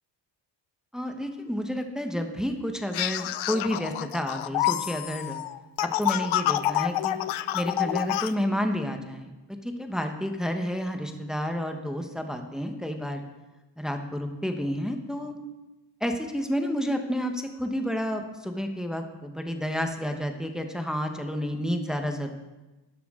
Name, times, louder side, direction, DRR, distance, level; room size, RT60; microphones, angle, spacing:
voice 1, 0.9-5.4 5.8-7.2 7.5-9.3 9.6-13.2 13.8-15.3 16.0-22.3, equal, ahead, 5 dB, 1.0 m, -30 dB
sound 1, 2.9-8.3, left 14 dB, 80° left, 0.6 m, -28 dB
12.5 x 10.5 x 3.7 m, 1.1 s
cardioid pair, 120°, 47 cm